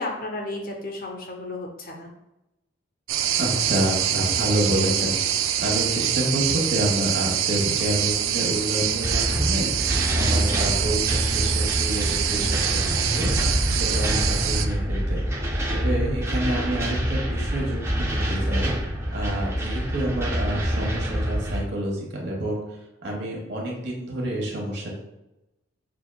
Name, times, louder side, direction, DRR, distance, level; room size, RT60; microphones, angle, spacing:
voice 1, 0.0-2.1, left 2 dB, 45° left, 2 dB, 0.6 m, -33 dB
sound 1, 3.1-14.7, right 9 dB, 90° right, 0.3 m, -25 dB
voice 2, 3.4-12.6 12.8-15.2 15.7-18.7 19.1-22.6 23.0-24.9, right 1 dB, 55° right, -1 dB, 1.0 m, -28 dB
sound 2, 9.0-21.6, equal, 15° right, 0.4 m, -26 dB
6.0 x 2.4 x 2.2 m, 0.92 s
head